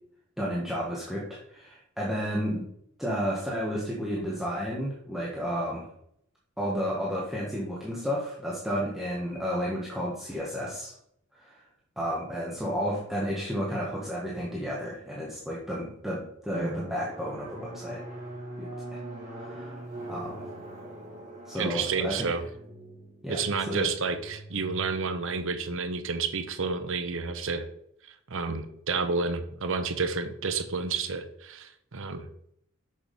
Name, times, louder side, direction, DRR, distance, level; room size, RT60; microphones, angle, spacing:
voice 1, 0.4-2.6 3.0-5.9 6.6-11.0 11.4-11.7 12.0-18.0 18.6-19.0 19.3-20.5 21.5-22.3 23.2-23.9, equal, ahead, -5 dB, 1.4 m, -32 dB
Drum, 16.5-25.8, right 1 dB, 35° right, 3.8 m, -42 dB
voice 2, 21.6-22.4 23.3-27.7 28.0-32.3, right 4 dB, 65° right, 9 dB, 0.9 m, -30 dB
6.5 x 6.3 x 5.3 m, 0.72 s
head